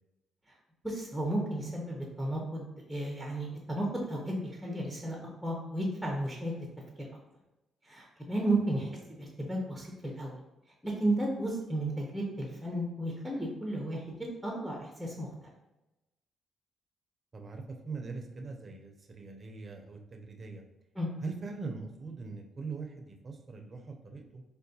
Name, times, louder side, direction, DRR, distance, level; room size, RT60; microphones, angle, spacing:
voice 1, 0.8-5.2 5.4-6.5 7.0-7.1 7.9-8.9 9.2-10.4 10.8-15.5 21.0-21.1, right 1 dB, ahead, -1 dB, 0.7 m, -33 dB
voice 2, 17.3-20.6 21.2-24.4, right 4 dB, 35° right, 3 dB, 0.5 m, -42 dB
4.6 x 2.2 x 2.7 m, 0.99 s
cardioid pair, 90°, 0 cm